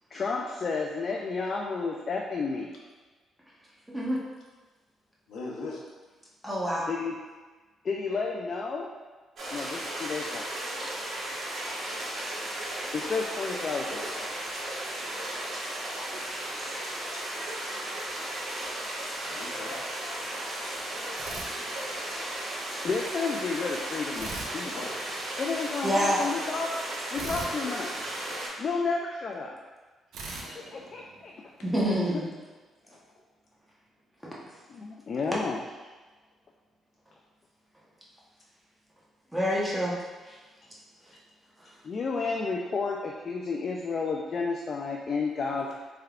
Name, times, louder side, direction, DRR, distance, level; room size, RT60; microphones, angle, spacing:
voice 1, 0.1-2.7 6.9-7.2 7.8-8.9 9.5-10.4 12.9-14.0 22.8-24.7 25.4-26.8 27.1-27.9 28.6-29.6 30.3-31.3 34.7-35.6 41.8-45.7, left 4 dB, 45° left, 0 dB, 0.4 m, -31 dB
voice 2, 5.3-5.8 13.8-14.3 17.1-17.2 19.3-19.8 24.7-24.9 32.8-33.0 45.6-45.7, left 3 dB, 75° left, -3 dB, 0.9 m, -40 dB
voice 3, 6.4-6.9 25.8-26.2 31.6-32.3 39.3-39.9 40.3-40.4, equal, 10° right, -6 dB, 0.9 m, -27 dB
sound 1, 9.4-28.5, right 1 dB, 60° right, 1.4 m, -35 dB
sound 2, 21.2-22.3 24.1-25.5 27.1-28.8 30.1-31.7, right 3 dB, 80° right, 0.6 m, -42 dB
4.5 x 3.4 x 2.4 m, 1.3 s
cardioid pair, 90°, 0 cm